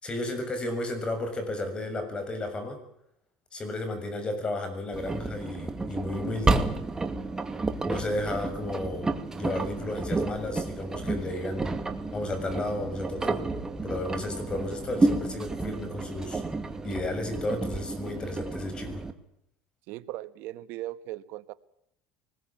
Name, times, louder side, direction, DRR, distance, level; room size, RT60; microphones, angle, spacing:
voice 1, 0.0-2.8 3.5-6.7 7.8-11.7 12.1-13.4 13.8-16.4 16.8-19.0, left 2 dB, 25° left, 8 dB, 6.9 m, -33 dB
Engine, 4.9-19.1, right 3 dB, 15° right, 2.2 m, -31 dB
voice 2, 19.9-21.5, right 15 dB, 70° right, 13 dB, 1.4 m, -38 dB
24.5 x 20.0 x 8.9 m, 0.76 s
supercardioid pair, 105°, 4 cm